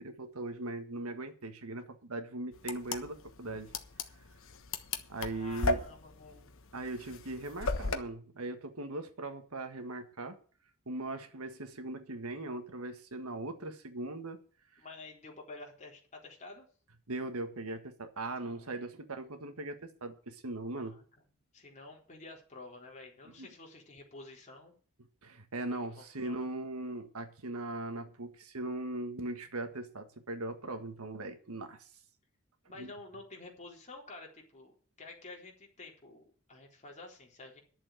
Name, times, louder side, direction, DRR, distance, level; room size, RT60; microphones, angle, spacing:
voice 1, 0.0-3.7 5.1-5.8 6.7-10.4 10.9-14.4 14.7-14.8 17.1-21.0 23.4-23.5 25.2-31.9 32.8-32.9, right 2 dB, 75° right, 1.7 m, -39 dB
sound 1, 2.6-8.0, left 3 dB, 65° left, 1.3 m, -35 dB
voice 2, 5.3-6.5 14.8-16.7 18.4-18.9 20.8-21.0 21.5-24.7 25.5-26.5 32.7-37.6, left 2 dB, 35° left, 3.8 m, -50 dB
11.0 x 7.4 x 9.0 m
head